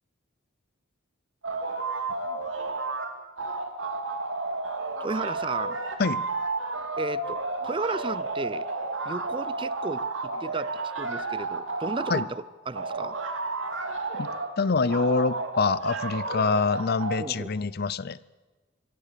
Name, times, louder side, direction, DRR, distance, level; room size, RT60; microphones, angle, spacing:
sound 1, 1.4-3.1 3.4-12.3 12.7-14.5 14.9-17.2, right 3 dB, 70° right, 2.7 m, -31 dB
voice 1, 5.0-5.8 7.0-7.4 7.6-8.7 9.1-10.7 11.0-13.2 17.2-17.5, right 3 dB, 25° right, 18 dB, 0.5 m, -34 dB
voice 2, 14.6-18.2, left 4 dB, 50° left, 20 dB, 0.6 m, -25 dB
24.0 x 17.0 x 6.8 m, 1.3 s
head